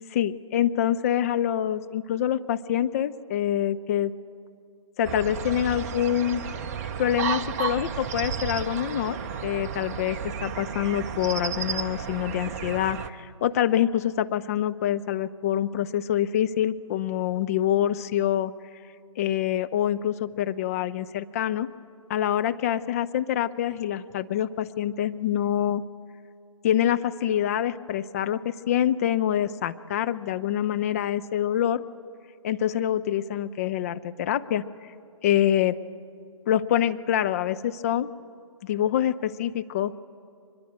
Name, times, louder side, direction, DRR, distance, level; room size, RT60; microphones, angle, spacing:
voice 1, 0.1-4.1 5.0-6.4 7.0-18.5 19.2-21.7 22.1-25.8 26.6-31.8 32.4-34.6 35.2-35.8 36.5-38.1 38.6-40.0, left 11 dB, 30° left, 11 dB, 0.6 m, -26 dB
sound 1, 5.0-13.1, right 7 dB, 30° right, 0.9 m, -32 dB
23.5 x 21.5 x 9.1 m, 2.4 s
figure-of-eight pair, 140°, 17 cm